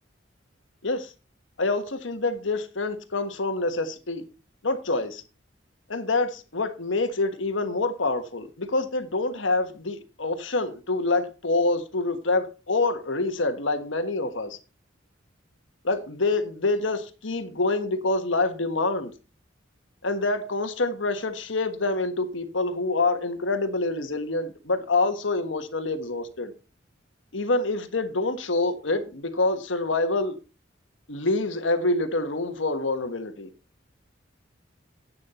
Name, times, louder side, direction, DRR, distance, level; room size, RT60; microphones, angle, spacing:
voice 1, 1.6-4.3 4.6-5.2 5.9-14.6 15.8-19.1 20.0-26.5 27.3-30.4 31.1-33.5, left 2 dB, 80° left, 1.5 m, -26 dB
10.5 x 8.6 x 4.3 m
head